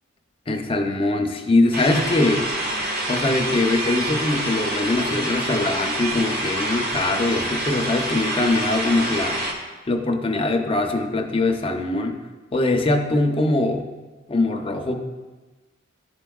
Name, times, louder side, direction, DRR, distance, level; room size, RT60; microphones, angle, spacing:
voice 1, 0.5-2.4 3.1-9.4 9.9-12.2 12.5-13.8 14.3-14.9, left 2 dB, 25° left, 4 dB, 0.5 m, -22 dB
sound 1, 1.7-9.5, right 1 dB, 50° right, 1.1 m, -27 dB
11.0 x 4.4 x 2.3 m, 1.2 s
head